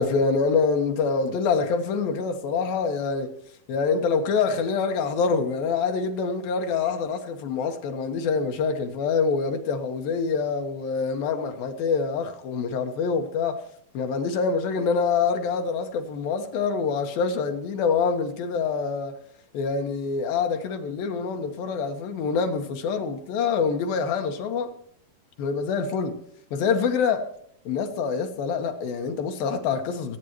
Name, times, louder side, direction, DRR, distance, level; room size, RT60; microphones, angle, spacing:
voice 1, 0.0-3.4 3.7-13.6 13.9-19.2 19.5-24.7 25.4-26.2 26.5-27.3 27.7-30.2, left 5 dB, 75° left, 3.1 m, -25 dB
23.0 x 9.2 x 3.1 m
omnidirectional pair, 4.3 m